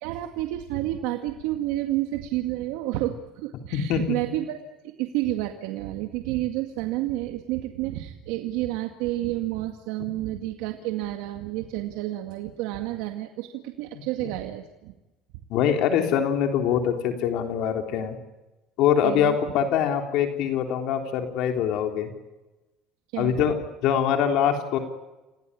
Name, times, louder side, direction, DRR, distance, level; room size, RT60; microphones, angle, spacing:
voice 1, 0.0-4.6 4.8-14.9 19.0-19.4 23.1-23.4, right 15 dB, 85° right, 5 dB, 2.0 m, -30 dB
voice 2, 15.5-18.2 18.8-22.1 23.2-24.8, left 8 dB, 70° left, 4 dB, 3.6 m, -24 dB
29.0 x 18.0 x 9.9 m, 1.1 s
cardioid pair, 120°, 0 cm